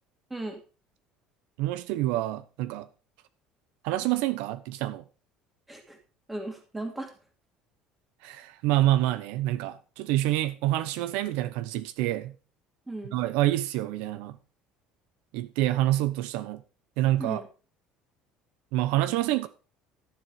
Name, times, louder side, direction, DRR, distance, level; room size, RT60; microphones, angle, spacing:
voice 1, 0.3-0.6 5.7-6.0 6.3-7.1 12.9-13.2 17.2-17.5, right 2 dB, 5° right, 2.7 m, -36 dB
voice 2, 1.6-2.9 3.8-5.0 8.2-12.3 13.1-14.4 15.3-16.6 17.0-17.4 18.7-19.5, right 15 dB, 75° right, 0.8 m, -27 dB
12.5 x 7.3 x 5.0 m
cardioid pair, 165°, 2 cm